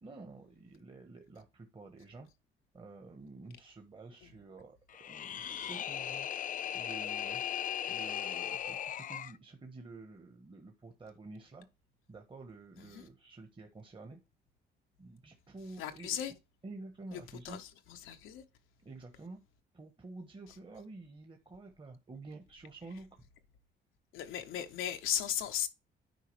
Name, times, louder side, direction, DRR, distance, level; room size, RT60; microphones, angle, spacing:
voice 1, 0.0-2.3 2.7-4.8 5.1-7.4 7.9-11.7 12.1-14.2 15.0-16.2 16.6-17.6 18.8-19.4 19.7-23.1, right 3 dB, 25° right, 1.2 m, -50 dB
sound 1, 4.9-9.4, left 9 dB, 40° left, 0.4 m, -37 dB
voice 2, 15.8-16.3 17.1-18.4 24.1-25.7, left 10 dB, 90° left, 0.8 m, -37 dB
9.3 x 4.8 x 3.3 m
cardioid pair, 90°, 20 cm